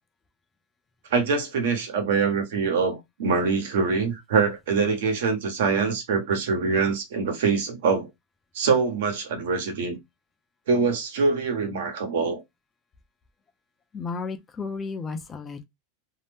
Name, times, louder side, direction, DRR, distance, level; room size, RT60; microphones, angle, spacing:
voice 1, 1.1-8.1 8.5-10.0 10.7-12.4, right 5 dB, 75° right, 1.1 m, -24 dB
voice 2, 13.9-15.6, left 4 dB, 15° left, 0.4 m, -33 dB
2.7 x 2.1 x 3.4 m
supercardioid pair, 165°, 0 cm